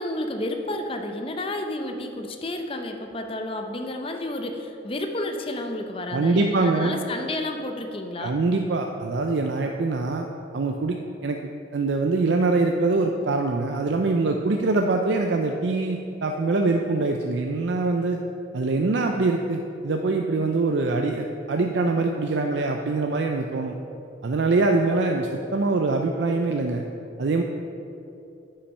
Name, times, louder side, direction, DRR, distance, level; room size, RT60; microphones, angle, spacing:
voice 1, 0.0-8.4, left 1 dB, 30° left, 4 dB, 0.6 m, -31 dB
voice 2, 6.1-7.0 8.2-10.3 10.5-11.0 11.2-18.2 18.5-23.7 24.2-26.8 27.2-27.4, right 3 dB, 80° right, 3 dB, 0.5 m, -24 dB
10.0 x 5.6 x 5.4 m, 2.8 s
head